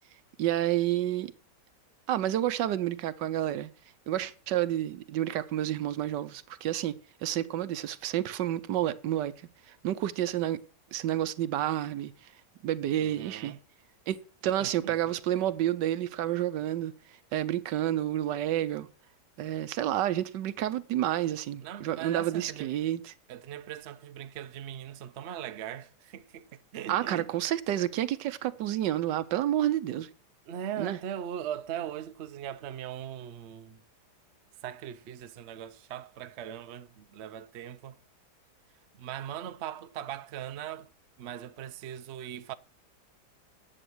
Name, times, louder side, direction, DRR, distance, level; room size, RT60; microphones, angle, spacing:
voice 1, 0.4-1.3 2.1-3.7 4.1-9.3 9.8-10.6 10.9-12.1 12.6-13.5 14.1-14.2 14.4-16.9 17.3-18.9 19.4-23.0 26.9-30.1 30.8-31.0, right 12 dB, 85° right, 1.4 m, -29 dB
voice 2, 13.0-13.6 14.6-15.2 21.6-22.7 23.3-27.3 30.5-33.8 34.6-38.0 38.9-40.9 41.2-42.5, right 10 dB, 60° right, 0.7 m, -40 dB
10.0 x 7.9 x 6.2 m
omnidirectional pair, 1.8 m